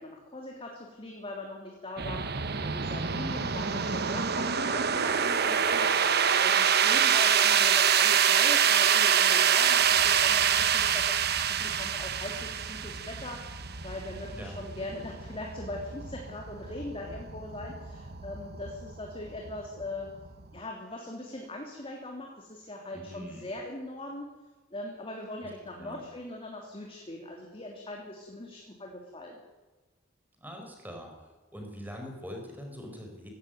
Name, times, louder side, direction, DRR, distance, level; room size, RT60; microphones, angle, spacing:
voice 1, 0.0-2.2 2.6-6.0 6.4-20.1 20.5-24.3 24.7-29.4, left 1 dB, 30° left, 0 dB, 3.1 m, -40 dB
sound 1, 2.0-20.6, right 8 dB, 55° right, 1.3 m, -26 dB
voice 2, 22.9-23.5 25.4-25.5 25.8-26.0 30.4-31.1 31.5-33.3, equal, 10° right, 3 dB, 5.2 m, -42 dB
18.5 x 16.0 x 9.4 m, 1.3 s
head